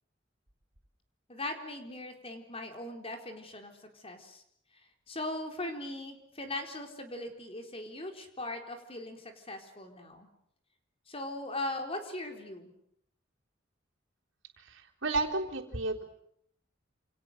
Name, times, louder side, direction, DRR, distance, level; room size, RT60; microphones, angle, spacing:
voice 1, 1.3-4.4 5.1-10.3 11.1-12.7, left 1 dB, 30° left, 4 dB, 4.1 m, -39 dB
voice 2, 14.6-16.0, right 2 dB, 85° right, 1 dB, 3.8 m, -32 dB
28.5 x 28.0 x 6.6 m, 0.71 s
head